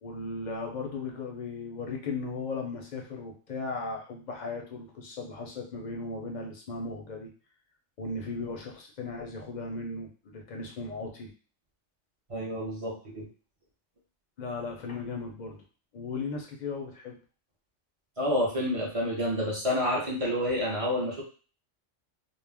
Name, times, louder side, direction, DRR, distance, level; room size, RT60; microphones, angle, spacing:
voice 1, 0.0-7.3 8.0-11.3 14.4-15.6 15.9-17.2, left 3 dB, 55° left, 1 dB, 0.5 m, -36 dB
voice 2, 12.3-13.3 18.2-21.2, left 1 dB, 40° right, -3 dB, 0.5 m, -29 dB
2.3 x 2.1 x 3.3 m, 0.38 s
omnidirectional pair, 1.3 m